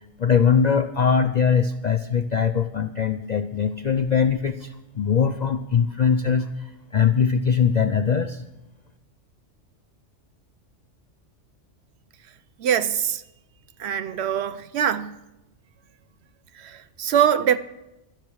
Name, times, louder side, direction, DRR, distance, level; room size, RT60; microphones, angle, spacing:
voice 1, 0.2-8.4, left 6 dB, 60° left, 0.4 m, -21 dB
voice 2, 12.6-13.2 13.8-15.1 16.6-17.6, right 9 dB, 65° right, 0.8 m, -23 dB
12.5 x 10.5 x 6.3 m
omnidirectional pair, 1.3 m